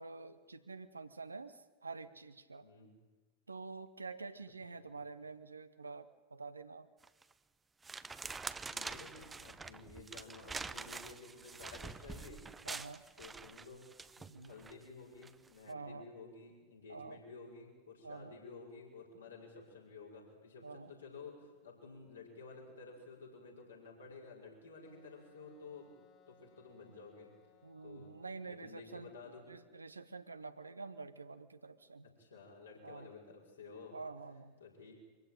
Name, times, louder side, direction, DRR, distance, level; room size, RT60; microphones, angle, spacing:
voice 1, 0.0-2.7 3.5-6.9 12.6-13.0 14.3-14.5 15.7-16.1 16.9-17.2 18.0-18.3 20.6-20.9 27.6-32.1 32.8-33.1 33.9-34.6, right 4 dB, 80° right, 11 dB, 1.1 m, -48 dB
voice 2, 2.6-2.9 4.8-4.9 8.5-12.7 13.2-13.8 14.2-25.9 26.3-27.3 27.8-28.1 28.5-29.4 32.2-34.0 34.6-34.9, left 4 dB, 75° left, -1 dB, 6.2 m, -53 dB
sound 1, 7.0-7.3 7.8-14.7 15.2-15.5, right 4 dB, 15° right, 0.8 m, -46 dB
Wind instrument woodwind instrument, 24.8-29.5, left 6 dB, 35° left, 3.0 m, -68 dB
24.0 x 15.5 x 9.2 m, 1.3 s
figure-of-eight pair, 90°, 0 cm